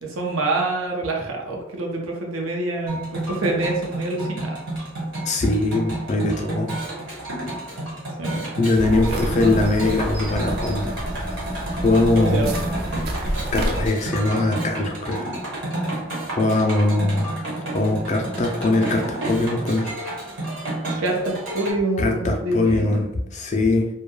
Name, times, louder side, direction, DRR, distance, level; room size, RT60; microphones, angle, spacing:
voice 1, 0.0-4.6 8.2-8.5 9.1-9.2 12.0-12.6 21.0-23.3, right 2 dB, 90° right, 0 dB, 0.6 m, -26 dB
sound 1, 2.9-21.7, right 1 dB, 70° right, 1.2 m, -30 dB
voice 2, 5.2-6.7 8.6-10.9 11.7-12.5 12.9-13.1 13.5-15.4 15.8-15.9 16.4-17.3 17.7-19.9 22.0-23.9, left 2 dB, 35° left, 1 dB, 0.4 m, -21 dB
sound 2, 8.7-13.9, equal, 50° right, 0.4 m, -29 dB
2.2 x 2.2 x 3.1 m, 0.88 s
head